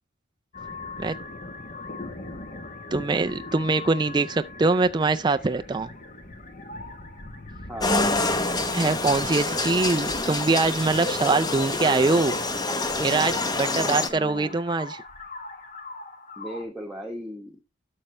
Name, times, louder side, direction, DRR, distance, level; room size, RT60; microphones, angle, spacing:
sound 1, 0.5-16.6, left 2 dB, 40° left, 1.3 m, -41 dB
voice 1, 2.9-5.9 8.7-12.4 13.0-15.0, right 3 dB, 20° right, 0.4 m, -23 dB
voice 2, 7.7-8.2 13.7-14.6 16.4-17.6, equal, ahead, 1.3 m, -37 dB
sound 2, 7.8-14.1, left 2 dB, 20° left, 0.8 m, -26 dB
11.5 x 6.6 x 3.2 m
head